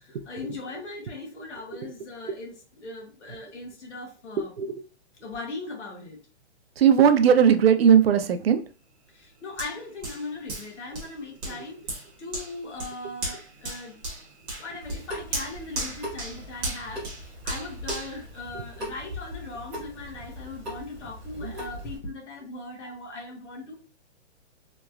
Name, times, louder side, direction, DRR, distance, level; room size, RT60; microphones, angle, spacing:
voice 1, 0.0-4.5 5.2-6.2 9.1-14.0 14.6-23.7, left 3 dB, 85° left, 0 dB, 1.2 m, -39 dB
voice 2, 6.8-8.6 18.5-18.6 21.4-21.5, right 8 dB, 60° right, 9 dB, 0.5 m, -18 dB
Hands, 9.6-19.1 19.6-19.7, right 2 dB, 20° right, 0.9 m, -37 dB
Water tap faucet / Sink (filling or washing) / Drip, 14.8-22.0, equal, 5° right, 0.5 m, -40 dB
3.0 x 2.9 x 2.3 m, 0.38 s
hypercardioid pair, 165°, 34 cm